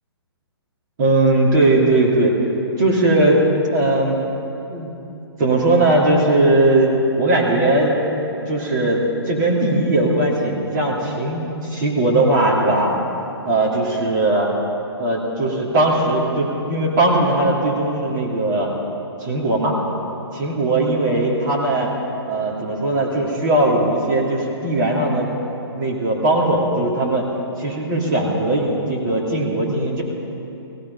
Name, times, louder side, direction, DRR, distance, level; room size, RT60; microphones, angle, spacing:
voice 1, 1.0-2.4 2.8-3.4 3.7-4.3 4.7-4.9 5.4-8.0 8.5-12.9 13.4-14.5 15.0-18.7 19.2-19.8 20.3-21.9 22.3-25.3 25.7-27.3 27.6-30.0, right 2 dB, 45° right, -3 dB, 2.8 m, -19 dB
17.5 x 15.0 x 5.5 m, 2.9 s
figure-of-eight pair, 130°, 14 cm